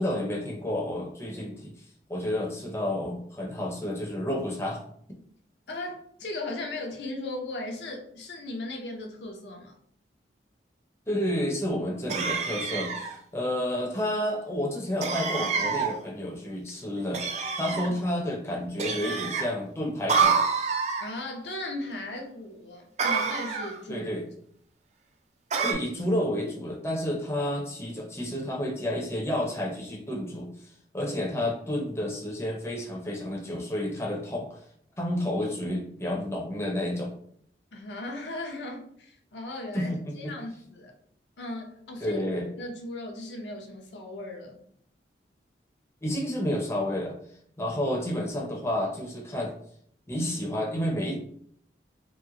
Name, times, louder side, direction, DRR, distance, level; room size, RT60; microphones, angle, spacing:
voice 1, 0.0-1.7 2.1-4.8 11.1-17.2 17.6-20.4 23.9-24.2 25.6-30.5 30.9-34.6 35.0-37.1 39.7-40.3 42.0-42.5 46.0-47.1 47.6-49.5 50.1-51.2, left 1 dB, 15° left, -1 dB, 0.5 m, -30 dB
voice 2, 5.7-9.8 17.8-18.0 21.0-24.1 37.7-40.9 41.4-42.2 42.6-44.6, left 2 dB, 80° left, 1 dB, 0.7 m, -37 dB
sound 1, 12.1-13.1 15.0-15.9 17.1-17.9 18.8-19.5 20.1-21.1 23.0-23.8 25.5-25.7, right 5 dB, 40° right, 0.4 m, -27 dB
3.0 x 2.1 x 3.6 m, 0.64 s
head